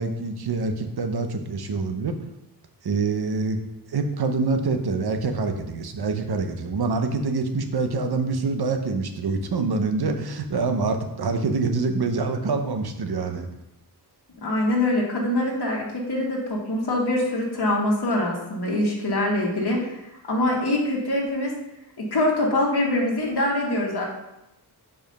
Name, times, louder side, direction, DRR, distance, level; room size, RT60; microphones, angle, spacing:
voice 1, 0.0-2.2 2.8-3.6 3.9-13.5, right 3 dB, 70° right, 6 dB, 0.9 m, -25 dB
voice 2, 14.4-19.9 20.3-21.5 22.0-24.1, left 1 dB, 70° left, -2 dB, 1.6 m, -24 dB
5.1 x 4.9 x 5.2 m, 0.91 s
wide cardioid pair, 80°, 40 cm